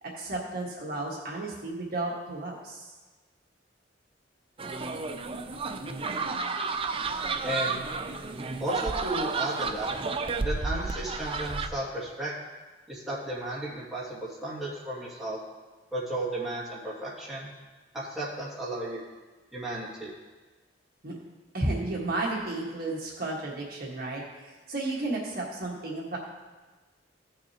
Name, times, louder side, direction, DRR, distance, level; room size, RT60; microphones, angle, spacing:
voice 1, 0.0-2.9 21.0-21.2 21.5-26.2, right 2 dB, 55° right, -3 dB, 1.5 m, -33 dB
sound 1, 4.6-11.7, right 4 dB, 30° right, 0.4 m, -32 dB
voice 2, 7.4-7.8 8.6-9.9 10.4-12.3 12.9-15.4 15.9-17.5 17.9-19.0 19.5-20.1, right 1 dB, ahead, -9 dB, 2.2 m, -34 dB
15.0 x 6.5 x 2.9 m, 1.3 s
head